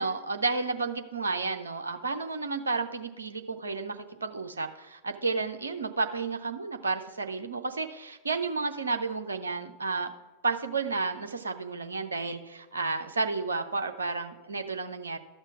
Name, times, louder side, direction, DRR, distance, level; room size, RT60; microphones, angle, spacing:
voice 1, 0.0-10.1 10.4-15.2, right 4 dB, 75° right, 7 dB, 0.7 m, -32 dB
12.5 x 6.8 x 4.6 m, 1.1 s
figure-of-eight pair, 90°, 0 cm